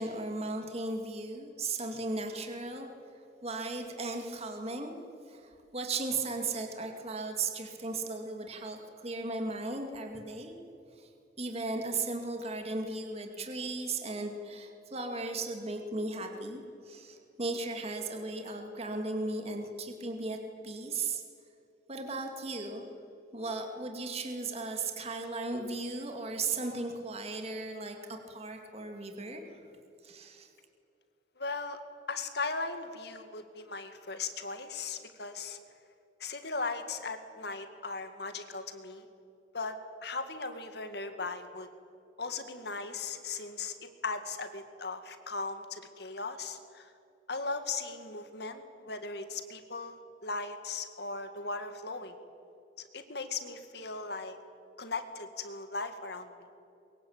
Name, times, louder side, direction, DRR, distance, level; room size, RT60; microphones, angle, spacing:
voice 1, 0.0-2.9 3.4-4.9 5.3-10.6 11.0-11.1 11.4-20.4 20.6-21.2 21.9-22.8 23.3-29.7 30.0-30.5, right 3 dB, 35° right, 3 dB, 2.4 m, -36 dB
voice 2, 31.4-31.8 32.1-35.6 36.2-39.1 39.5-39.8 40.0-41.7 42.2-43.7 44.0-46.9 47.3-52.2 52.9-54.4 54.8-56.5, left 3 dB, 60° left, 8 dB, 2.1 m, -38 dB
23.5 x 22.5 x 8.8 m, 2.7 s
head